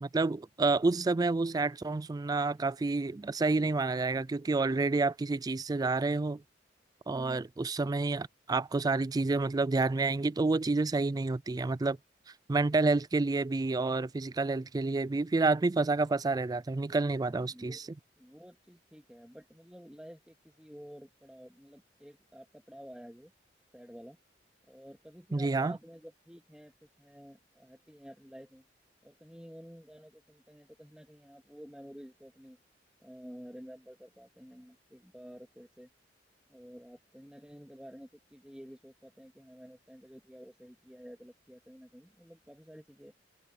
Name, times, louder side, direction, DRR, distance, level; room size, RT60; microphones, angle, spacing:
voice 1, 0.0-6.4 7.1-12.0 12.5-17.8 25.3-25.8, right 3 dB, 20° right, 0.3 m, -29 dB
voice 2, 17.4-17.9 18.2-23.3 23.7-24.2 24.7-28.6 29.0-32.6 33.0-35.9 36.5-43.1, equal, 5° right, 2.4 m, -51 dB
head